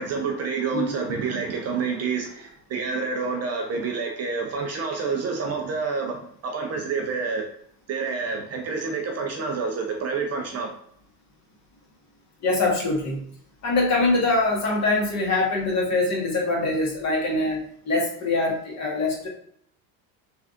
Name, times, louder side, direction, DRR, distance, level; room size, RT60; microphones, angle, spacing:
voice 1, 0.0-7.4 7.9-10.7, right 4 dB, 35° right, 3 dB, 0.5 m, -28 dB
voice 2, 12.4-13.2 13.6-19.3, left 2 dB, 40° left, -2 dB, 1.2 m, -23 dB
3.3 x 2.4 x 2.4 m, 0.64 s
supercardioid pair, 95°, 44 cm